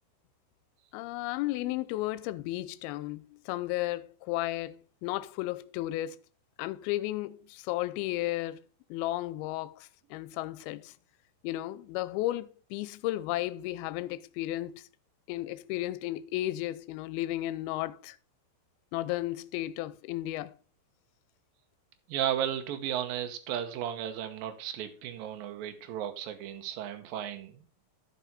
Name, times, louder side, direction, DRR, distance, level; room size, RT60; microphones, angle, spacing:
voice 1, 0.9-4.8 5.0-6.2 6.6-8.6 8.9-10.9 11.4-14.8 15.3-18.2 18.9-20.5, left 16 dB, 85° left, 2.4 m, -34 dB
voice 2, 22.1-27.6, right 10 dB, 70° right, 2.7 m, -34 dB
11.0 x 5.9 x 4.1 m
omnidirectional pair, 4.4 m